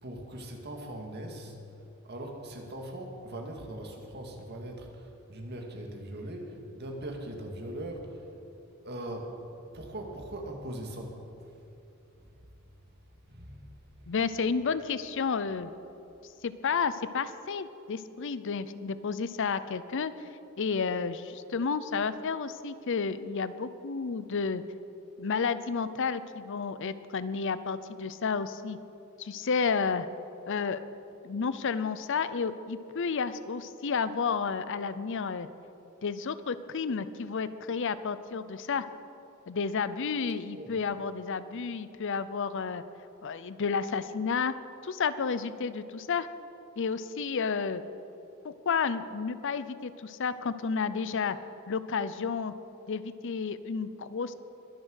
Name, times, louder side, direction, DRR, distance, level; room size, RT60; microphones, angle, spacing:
voice 1, 0.0-1.6 2.1-8.2 8.8-9.4 9.7-11.2 13.3-13.7 14.0-14.1 40.5-40.7, right 1 dB, 50° right, 2 dB, 2.0 m, -40 dB
voice 2, 14.1-15.7 16.4-20.3 20.6-24.6 25.2-28.8 29.2-30.1 30.5-30.8 31.2-35.5 36.0-38.8 39.5-42.8 43.2-44.5 44.8-46.3 46.8-47.8 48.4-51.4 51.7-52.5 52.9-54.3, left 5 dB, 60° left, 14 dB, 0.6 m, -31 dB
21.5 x 7.5 x 6.4 m, 2.8 s
head